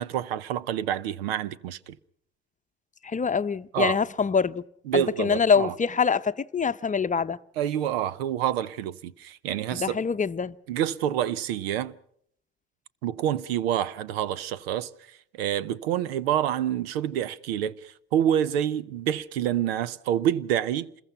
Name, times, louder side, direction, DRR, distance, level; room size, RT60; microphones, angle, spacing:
voice 1, 0.0-2.0 3.7-4.0 4.9-5.7 7.6-10.0 10.7-11.9 13.0-20.9, right 10 dB, 80° right, 0.8 m, -27 dB
voice 2, 3.0-4.6 4.9-7.4 9.7-10.5, left 6 dB, 25° left, 0.9 m, -25 dB
27.5 x 21.5 x 5.7 m
hypercardioid pair, 60°, 30 cm